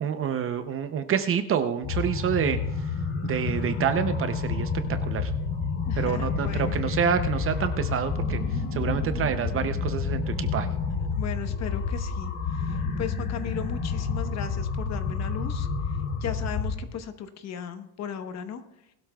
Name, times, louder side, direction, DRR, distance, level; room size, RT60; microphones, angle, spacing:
voice 1, 0.0-2.6 3.2-4.7 5.0-5.3 6.0-8.4 8.7-10.7, right 8 dB, 35° right, 9 dB, 0.6 m, -27 dB
sound 1, 1.8-16.8, left 4 dB, 60° left, 3.1 m, -29 dB
voice 2, 5.9-6.8 11.1-12.3 12.6-15.7 16.2-18.6, left 8 dB, 40° left, 8 dB, 1.0 m, -36 dB
20.0 x 12.5 x 2.3 m, 0.84 s
cardioid pair, 155°, 40 cm